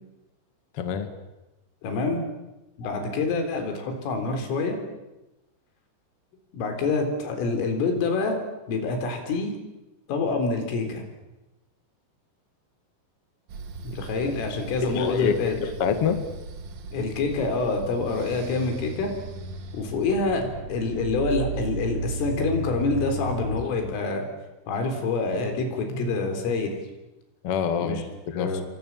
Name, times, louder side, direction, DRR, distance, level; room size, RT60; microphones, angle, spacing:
voice 1, 0.7-1.1 14.8-15.4 15.6-16.2 27.4-28.0 28.3-28.5, left 7 dB, 50° left, 8 dB, 1.8 m, -25 dB
voice 2, 1.8-2.3 2.8-4.8 6.5-8.4 8.7-9.5 10.1-11.0 13.8-15.6 16.9-19.1 19.7-24.3 24.7-26.8 27.8-28.0 28.3-28.6, left 3 dB, 90° left, 5 dB, 6.4 m, -26 dB
sound 1, 13.5-23.6, right 3 dB, 75° right, 1.5 m, -36 dB
28.5 x 24.0 x 7.5 m, 1.0 s
omnidirectional pair, 5.6 m